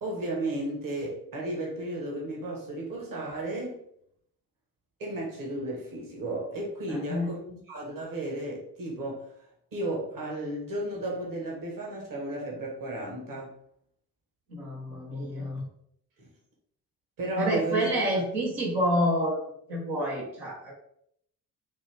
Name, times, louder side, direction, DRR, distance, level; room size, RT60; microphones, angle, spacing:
voice 1, 0.0-3.8 5.0-9.2 9.7-13.5 16.2-16.3 17.2-17.9, right 1 dB, 45° right, -2 dB, 1.6 m, -34 dB
voice 2, 6.9-7.3 14.5-15.7 17.4-19.4 19.7-20.7, equal, 75° right, -4 dB, 1.6 m, -28 dB
5.3 x 2.6 x 3.5 m, 0.68 s
hypercardioid pair, 50°, 47 cm